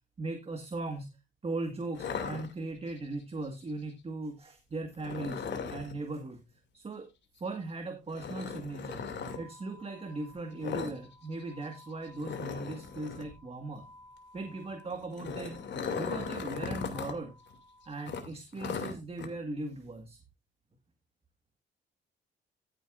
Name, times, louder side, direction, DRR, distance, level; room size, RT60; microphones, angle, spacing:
voice 1, 0.2-1.1 1.4-6.4 6.7-7.1 7.4-9.1 9.4-13.8 14.3-15.6 16.0-17.3 17.9-20.2, right 2 dB, 30° right, 5 dB, 1.7 m, -38 dB
sound 1, 2.0-3.0 5.0-5.9 8.1-9.4 10.6-11.0 11.2-11.4 11.7-11.8 12.2-13.3 14.9-17.1 17.5-17.6 18.1-19.3, left 5 dB, 65° left, 2.6 m, -37 dB
sound 2, 9.2-18.2, left 1 dB, 25° left, 4.6 m, -56 dB
14.5 x 7.7 x 2.5 m, 0.25 s
cardioid pair, 90°, 20 cm